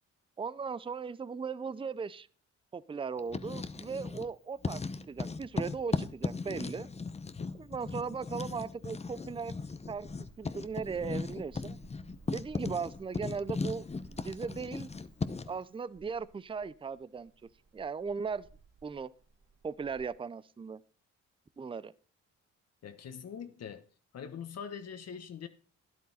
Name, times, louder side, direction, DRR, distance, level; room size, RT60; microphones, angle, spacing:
voice 1, 0.4-2.3 2.7-4.8 5.1-6.9 7.5-9.6 9.9-11.8 12.3-13.9 14.1-14.9 15.5-17.3 17.7-18.5 18.8-19.1 19.6-20.8 21.6-21.9, right 5 dB, 15° right, 0.5 m, -38 dB
Writing, 3.2-4.3 4.6-15.6, left 4 dB, 20° left, 0.8 m, -37 dB
sound 1, 9.8-20.1, right 3 dB, 40° right, 2.7 m, -59 dB
voice 2, 22.8-23.8 24.1-25.5, left 7 dB, 55° left, 1.4 m, -43 dB
12.5 x 11.0 x 4.2 m
cardioid pair, 90°, 30 cm